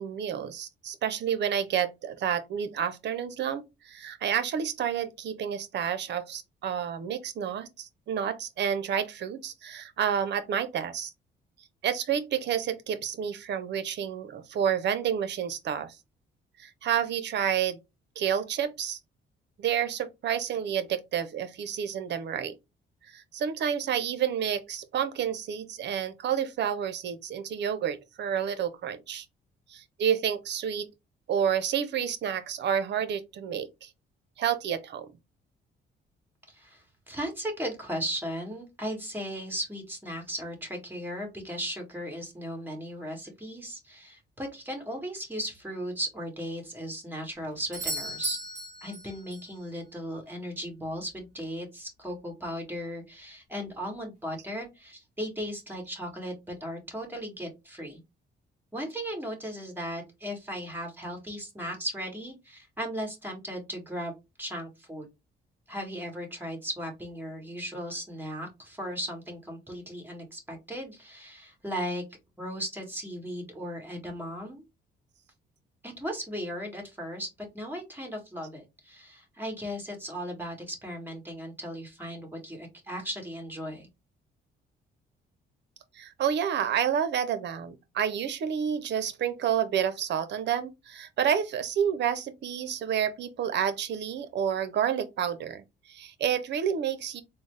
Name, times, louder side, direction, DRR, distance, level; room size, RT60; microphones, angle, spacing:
voice 1, 0.0-11.1 11.8-16.0 16.6-17.8 18.2-19.0 19.6-22.5 23.1-29.3 29.7-30.8 31.3-33.9 34.4-35.1 86.0-95.6 95.9-97.2, right 8 dB, 60° right, 0.6 m, -29 dB
voice 2, 36.5-48.4 48.8-58.0 58.7-64.1 64.4-65.1 65.7-72.0 72.4-74.6 75.8-77.3 77.5-83.9, equal, 10° right, 1.5 m, -36 dB
Doorbell, 47.7-49.6 53.6-53.7, right 2 dB, 40° right, 1.8 m, -36 dB
3.9 x 2.1 x 3.2 m
cardioid pair, 90°, 20 cm